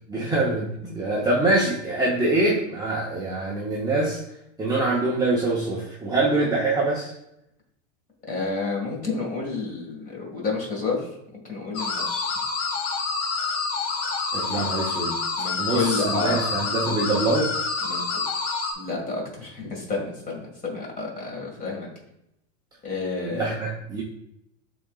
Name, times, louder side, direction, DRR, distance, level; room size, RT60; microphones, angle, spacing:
voice 1, 0.1-4.2 4.6-7.1 14.3-15.2 15.6-17.5 23.2-24.0, right 2 dB, 10° right, -5 dB, 0.7 m, -24 dB
voice 2, 8.3-11.0 11.5-12.4 14.5-14.6 15.4-16.4 17.8-18.0 18.8-21.9 22.8-23.5, left 3 dB, 20° left, -1 dB, 1.8 m, -30 dB
sound 1, 11.7-18.7, left 4 dB, 60° left, 1.3 m, -27 dB
11.0 x 3.8 x 2.3 m, 0.82 s
supercardioid pair, 145°, 38 cm